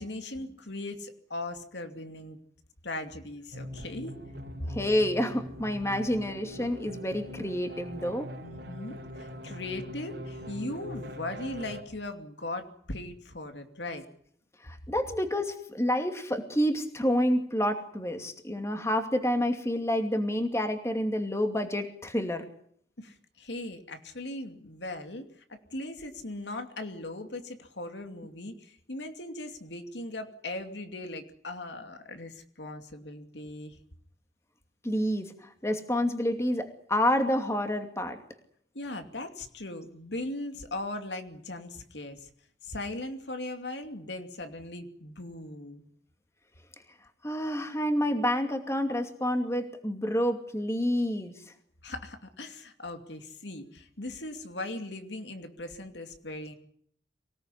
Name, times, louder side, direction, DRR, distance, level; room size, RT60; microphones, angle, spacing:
voice 1, 0.0-2.4 2.8-4.2 4.6-4.7 8.4-14.0 23.0-33.8 38.7-42.3 42.6-45.8 51.8-56.6, left 2 dB, 70° left, 7 dB, 2.5 m, -39 dB
sound 1, 3.5-11.8, equal, 60° right, 4.4 m, -42 dB
voice 2, 4.7-8.3 14.6-22.4 34.8-38.2 47.2-51.4, equal, 15° left, 6 dB, 2.5 m, -28 dB
25.0 x 18.0 x 9.9 m, 0.66 s
head